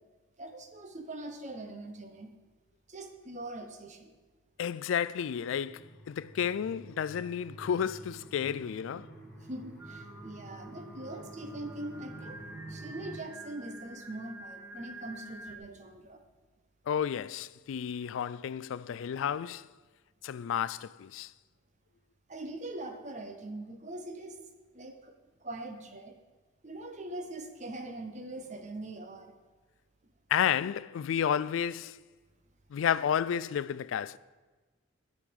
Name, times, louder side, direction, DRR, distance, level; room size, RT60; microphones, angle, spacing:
voice 1, 0.4-2.3 2.9-4.1 9.4-12.4 12.7-16.2 18.9-19.0 22.3-24.4 24.7-25.1 25.4-26.1 26.6-29.3, right 2 dB, 35° right, 0.9 m, -42 dB
voice 2, 4.6-9.1 16.9-19.7 20.2-21.3 30.3-32.0 32.7-34.2, left 8 dB, 75° left, 0.3 m, -31 dB
sound 1, 5.3-13.2, right 2 dB, 5° left, 2.8 m, -49 dB
Singing, 9.8-15.6, right 2 dB, 10° right, 0.6 m, -48 dB
10.5 x 6.4 x 5.4 m
head